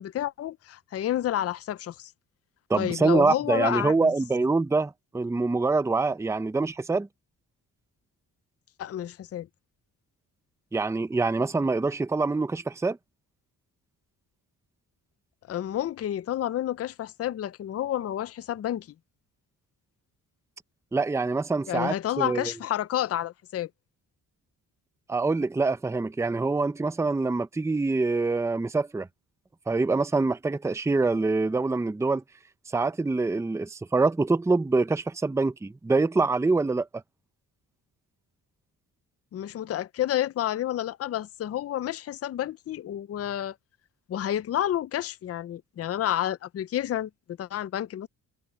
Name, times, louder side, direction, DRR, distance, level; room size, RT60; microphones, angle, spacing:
voice 1, 0.0-2.1 2.7-4.1 8.8-9.5 15.5-18.9 21.7-23.7 39.3-43.6 44.1-48.1, left 12 dB, 40° left, 0.4 m, -30 dB
voice 2, 2.7-7.1 10.7-13.0 20.9-22.5 25.1-29.1 29.7-32.2 32.7-36.9, right 3 dB, 10° right, 0.5 m, -25 dB
wide cardioid pair, 165°, 37 cm